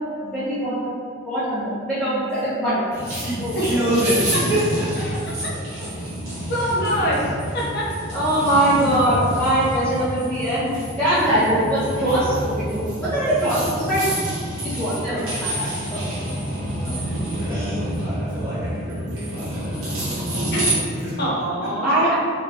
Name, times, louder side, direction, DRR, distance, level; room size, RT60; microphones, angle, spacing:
voice 1, 0.2-0.8 1.2-2.9 3.4-3.7 8.1-14.1 14.6-16.1 17.4-17.7 21.8-22.1, right 1 dB, 5° left, -14 dB, 1.3 m, -22 dB
voice 2, 2.9-5.5 5.8-5.9 6.9-7.3 8.8-9.0 16.8-20.4 20.9-21.2 21.6-22.0, right 1 dB, 15° right, -11 dB, 1.5 m, -28 dB
sound 1, 2.9-20.7, right 1 dB, 90° right, 1.4 m, -28 dB
voice 3, 6.5-7.2 7.5-7.9 15.1-15.2 20.5-20.7 21.2-21.9, equal, 55° left, -5 dB, 0.9 m, -24 dB
3.8 x 3.3 x 2.9 m, 2.2 s
head